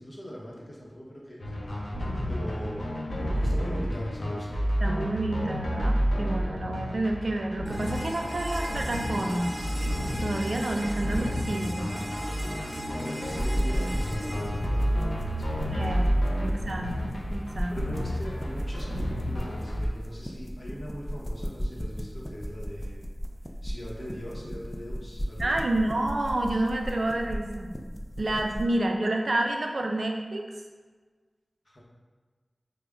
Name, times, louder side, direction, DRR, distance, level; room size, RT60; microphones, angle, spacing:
voice 1, 0.0-1.4 2.3-2.9 3.4-4.6 12.7-16.3 17.7-23.0 23.6-25.6 28.3-28.4 31.6-31.8, equal, 55° left, -4 dB, 0.8 m, -41 dB
sound 1, 1.4-19.9, equal, 90° left, 0.5 m, -30 dB
voice 2, 4.8-9.6 10.2-12.0 15.7-16.1 16.4-17.8 25.4-27.8 28.2-30.5, right 1 dB, 70° right, 2 dB, 0.3 m, -29 dB
sound 2, 7.7-15.6, equal, 25° right, 0.7 m, -38 dB
sound 3, 13.3-28.7, equal, 20° left, 0.3 m, -36 dB
4.8 x 2.0 x 2.3 m, 1.4 s
wide cardioid pair, 55°, 0 cm